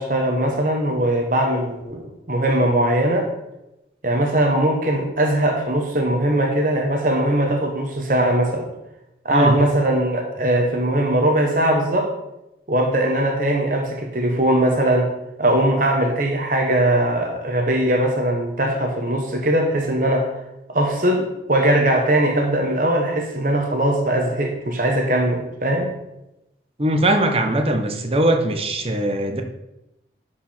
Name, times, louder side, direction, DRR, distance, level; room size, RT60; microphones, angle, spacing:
voice 1, 0.0-3.3 4.0-8.7 9.2-12.1 12.7-15.1 15.4-20.3 20.7-25.9, right 1 dB, 45° right, 2 dB, 1.2 m, -20 dB
voice 2, 26.8-29.4, right 1 dB, 30° right, 5 dB, 0.9 m, -20 dB
11.5 x 4.9 x 4.4 m, 0.91 s
head